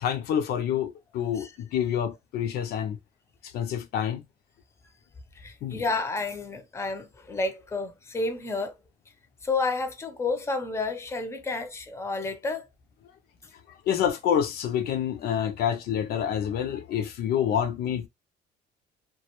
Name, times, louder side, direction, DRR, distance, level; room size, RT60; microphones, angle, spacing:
voice 1, 0.0-3.0 3.4-4.2 5.6-5.8 13.9-18.1, left 9 dB, 70° left, 0.5 m, -27 dB
voice 2, 5.4-8.7 9.4-12.6, left 3 dB, 15° left, 0.6 m, -30 dB
2.2 x 2.1 x 2.9 m
cardioid pair, 110°, 17 cm